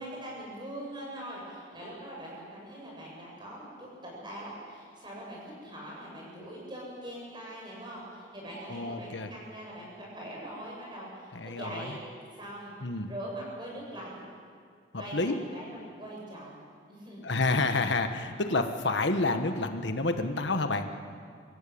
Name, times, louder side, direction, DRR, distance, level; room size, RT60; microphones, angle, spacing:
voice 1, 0.0-12.0 12.4-12.7 13.1-14.2 15.0-15.7 16.0-16.6 16.9-17.3, right 1 dB, 25° right, -4 dB, 7.7 m, -42 dB
voice 2, 8.7-9.3 11.3-11.9 12.8-13.1 14.9-15.3 17.2-20.9, left 3 dB, 70° left, 7 dB, 1.4 m, -29 dB
25.5 x 15.5 x 8.7 m, 2.1 s
head